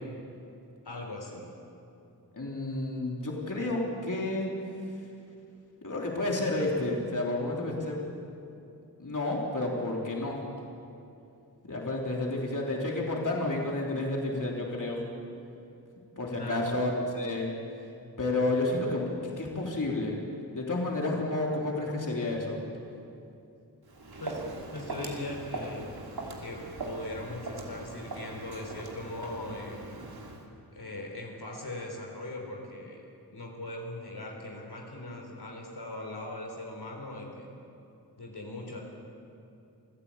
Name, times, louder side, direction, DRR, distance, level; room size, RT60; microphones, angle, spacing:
voice 1, 0.8-1.5 16.4-16.8 24.2-24.4 24.7-26.0 26.4-29.8 30.7-33.0 33.3-37.5 38.2-38.8, left 2 dB, 80° left, 1 dB, 3.8 m, -40 dB
voice 2, 2.3-4.5 5.8-8.0 9.0-10.4 11.7-15.0 16.2-17.5 18.2-20.2 20.5-22.6, left 2 dB, 50° left, -2 dB, 3.7 m, -30 dB
Walk footsteps, 23.9-30.5, right 2 dB, 75° right, 3.1 m, -40 dB
27.0 x 15.5 x 8.8 m, 2.7 s
wide cardioid pair, 85°, 38 cm